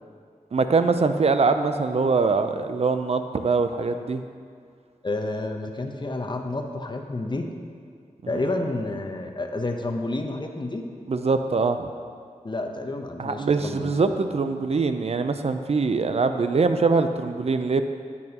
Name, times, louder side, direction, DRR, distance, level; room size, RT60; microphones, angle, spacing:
voice 1, 0.5-4.2 8.3-8.4 11.1-11.9 13.2-17.8, right 4 dB, 50° right, 9 dB, 0.5 m, -23 dB
voice 2, 5.0-7.5 8.3-10.8 12.4-13.9, left 2 dB, 35° left, 4 dB, 0.8 m, -30 dB
10.5 x 8.5 x 2.9 m, 2.2 s
wide cardioid pair, 70°, 13 cm